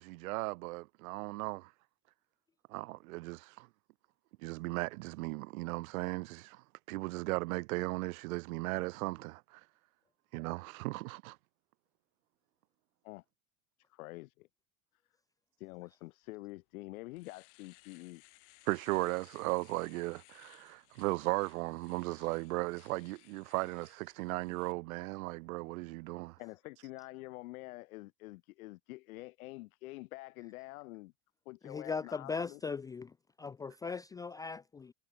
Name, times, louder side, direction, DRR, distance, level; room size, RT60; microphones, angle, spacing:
voice 1, 0.0-1.7 2.7-3.7 4.4-9.7 10.3-11.4 18.6-26.4, right 22 dB, 75° right, 1.4 m, -37 dB
voice 2, 13.9-14.5 15.6-18.2 26.4-31.1 31.5-32.6, left 21 dB, 75° left, 4.2 m, -47 dB
Domestic sounds home sounds, 16.5-16.6 17.0-24.7, left 37 dB, 55° left, 5.8 m, -62 dB
voice 3, 31.6-33.1 33.4-34.9, left 5 dB, 10° left, 0.6 m, -39 dB
cardioid pair, 180°, 42 cm